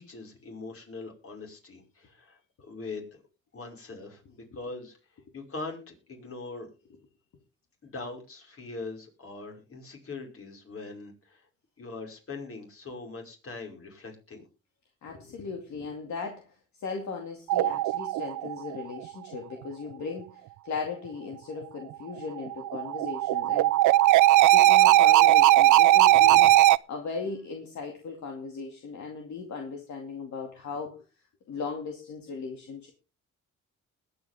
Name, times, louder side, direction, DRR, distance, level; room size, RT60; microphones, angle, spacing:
voice 1, 0.0-3.2 3.5-6.7 7.8-11.5 11.8-14.5, left 3 dB, 45° left, 2 dB, 5.4 m, -42 dB
voice 2, 15.0-24.0 24.5-26.5 26.9-31.0 31.5-32.9, left 4 dB, 65° left, 2 dB, 2.4 m, -37 dB
sound 1, 17.5-18.8 22.4-26.8, right 15 dB, 75° right, 0.5 m, -19 dB
21.0 x 8.8 x 3.6 m, 0.32 s
cardioid pair, 90°, 30 cm